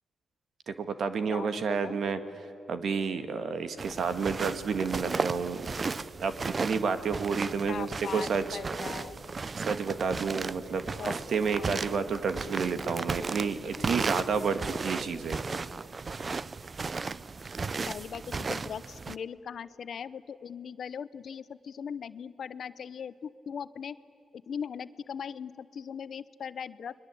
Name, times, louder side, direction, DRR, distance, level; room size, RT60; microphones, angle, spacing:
voice 1, 0.7-2.2 2.7-5.6 6.2-8.6 9.6-15.4, right 5 dB, 70° right, 10 dB, 1.8 m, -30 dB
voice 2, 1.3-2.0 7.7-9.2 11.0-11.2 11.6-11.7 17.9-24.0 24.3-26.9, left 7 dB, 65° left, 15 dB, 0.8 m, -39 dB
sound 1, 3.8-19.2, right 4 dB, 40° right, 0.6 m, -35 dB
29.5 x 21.5 x 8.4 m, 2.8 s
cardioid pair, 65°, 0 cm